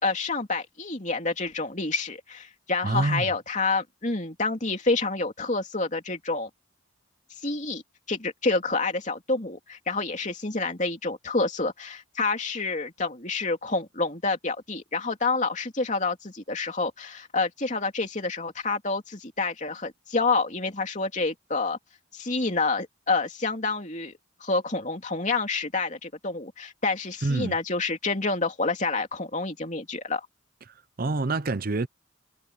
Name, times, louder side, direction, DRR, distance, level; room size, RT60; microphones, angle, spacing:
voice 1, 0.0-6.5 7.4-7.8 8.1-21.8 22.1-30.3, left 3 dB, 35° left, 3.0 m, -28 dB
voice 2, 2.8-3.3 27.2-27.5 30.7-31.9, right 2 dB, 45° right, 0.6 m, -27 dB
head